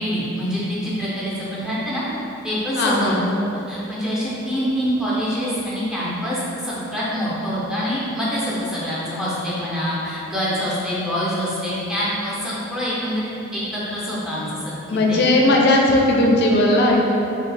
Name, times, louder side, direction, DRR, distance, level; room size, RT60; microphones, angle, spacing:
voice 1, 0.0-2.0 2.4-3.1 3.7-15.2, equal, 5° right, -8 dB, 0.6 m, -25 dB
voice 2, 2.8-3.2 14.9-17.0, left 1 dB, 50° left, -1 dB, 0.4 m, -17 dB
3.0 x 2.6 x 3.3 m, 3.0 s
head